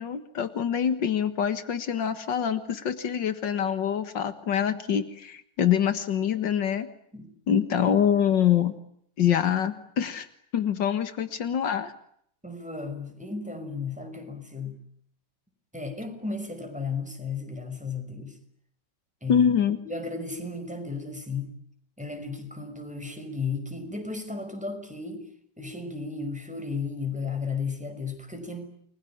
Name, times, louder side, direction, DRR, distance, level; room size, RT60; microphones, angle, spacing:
voice 1, 0.0-6.9 7.5-8.8 9.2-10.3 10.5-11.9 19.3-19.8, left 8 dB, 80° left, 11 dB, 2.2 m, -25 dB
voice 2, 12.4-14.8 15.7-18.4 19.2-19.5 19.8-21.5 22.0-25.3 25.6-28.7, left 4 dB, 5° right, 6 dB, 5.6 m, -34 dB
29.5 x 22.0 x 8.6 m, 0.70 s
omnidirectional pair, 1.9 m